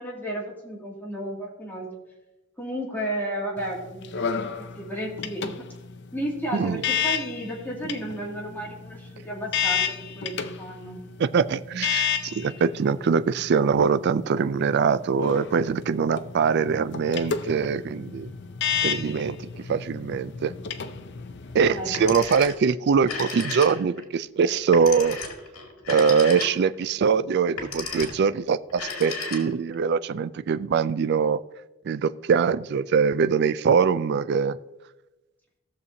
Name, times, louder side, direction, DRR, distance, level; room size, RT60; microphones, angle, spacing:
voice 1, 0.0-1.9 2.6-4.3 4.6-5.7 6.1-11.0 21.7-22.2, right 1 dB, 10° left, -4 dB, 2.3 m, -33 dB
sound 1, 3.6-22.1, left 7 dB, 55° left, 0.5 m, -32 dB
voice 2, 11.2-18.3 18.8-19.4 19.7-20.5 21.5-25.2 25.9-31.4 31.8-34.6, right 6 dB, 50° right, 14 dB, 0.3 m, -23 dB
Telephone, 21.8-22.7 23.0-24.0 24.7-26.8 27.5-28.3 28.7-29.7, left 4 dB, 85° left, 2.1 m, -34 dB
17.5 x 6.6 x 2.7 m, 1.0 s
head